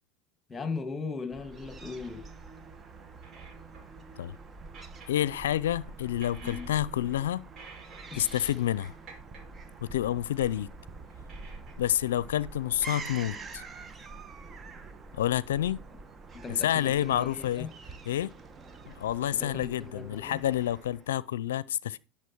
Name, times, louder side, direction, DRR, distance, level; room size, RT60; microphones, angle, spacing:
voice 1, 0.5-2.3 6.4-6.7 8.1-8.3 16.3-17.7 19.3-20.4, left 4 dB, 20° left, 2.3 m, -38 dB
Fowl / Gull seagull, 1.3-21.2, right 3 dB, 30° right, 1.3 m, -46 dB
sound 1, 3.2-4.0 4.7-5.4 6.1-7.1 7.5-8.6 8.9-9.5 10.5-10.6 11.1-12.2, right 4 dB, 45° right, 5.6 m, -51 dB
voice 2, 5.1-7.4 8.2-8.9 9.8-10.7 11.8-13.6 15.1-15.8 16.6-17.7 18.1-18.3 18.9-22.0, left 12 dB, 85° left, 0.5 m, -29 dB
11.0 x 6.9 x 4.6 m
hypercardioid pair, 95°, 0 cm